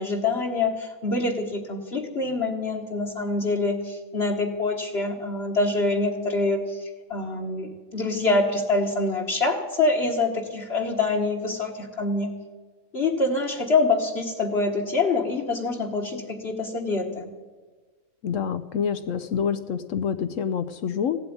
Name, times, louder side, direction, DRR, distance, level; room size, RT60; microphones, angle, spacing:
voice 1, 0.0-12.3 12.9-17.3, left 3 dB, 50° left, 0 dB, 1.5 m, -25 dB
voice 2, 18.2-21.2, left 7 dB, 70° left, 11 dB, 1.0 m, -27 dB
16.0 x 7.9 x 9.3 m, 1.4 s
omnidirectional pair, 1.5 m